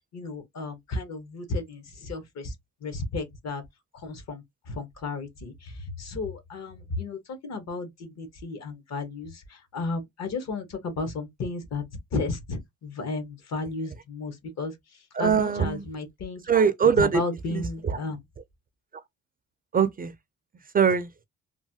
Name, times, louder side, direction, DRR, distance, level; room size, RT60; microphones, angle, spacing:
voice 1, 0.1-2.5 2.8-3.6 3.9-11.8 12.1-14.7 15.2-16.4 16.9-18.2, left 3 dB, 60° left, 1.1 m, -33 dB
voice 2, 15.1-15.8 16.5-17.2 17.5-18.0 19.7-20.1 20.7-21.1, right 7 dB, 30° right, 0.4 m, -22 dB
3.1 x 2.2 x 2.7 m
cardioid pair, 90°, 30 cm